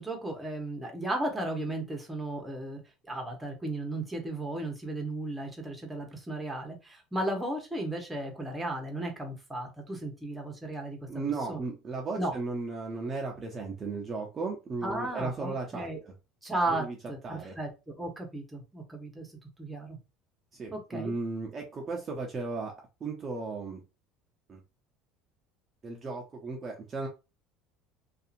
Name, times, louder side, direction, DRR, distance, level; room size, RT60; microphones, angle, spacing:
voice 1, 0.0-2.8 3.1-11.0 11.5-11.6 12.2-12.3 14.8-16.0 16.4-19.3 19.6-20.0 20.7-21.1, right 1 dB, 5° right, 1 dB, 0.9 m, -35 dB
voice 2, 11.1-15.9 16.7-17.0 17.2-17.6 20.6-22.7 23.0-23.8 24.5-24.6 25.8-27.1, right 3 dB, 30° right, 1 dB, 0.6 m, -35 dB
2.7 x 2.4 x 2.5 m, 0.28 s
supercardioid pair, 120°, 0 cm